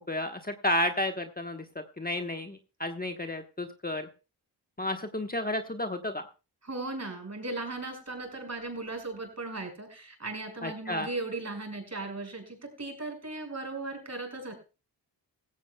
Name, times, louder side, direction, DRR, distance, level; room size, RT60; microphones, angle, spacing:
voice 1, 0.1-4.1 4.8-6.3 10.6-11.1, left 1 dB, 20° left, 5 dB, 1.2 m, -32 dB
voice 2, 6.6-14.5, right 2 dB, 40° right, 4 dB, 5.5 m, -37 dB
16.5 x 15.5 x 2.3 m, 0.31 s
cardioid pair, 55°, 42 cm